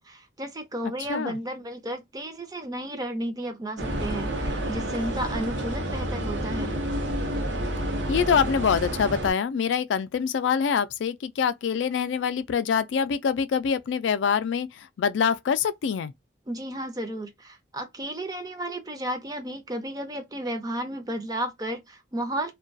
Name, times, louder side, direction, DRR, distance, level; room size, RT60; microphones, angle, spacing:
voice 1, 0.0-6.7 16.5-22.5, right 1 dB, 20° right, 0.5 m, -33 dB
sound 1, 3.8-9.3, right 1 dB, 75° right, 0.7 m, -29 dB
voice 2, 8.1-16.1, left 6 dB, 80° left, 0.3 m, -25 dB
2.3 x 2.2 x 2.5 m
head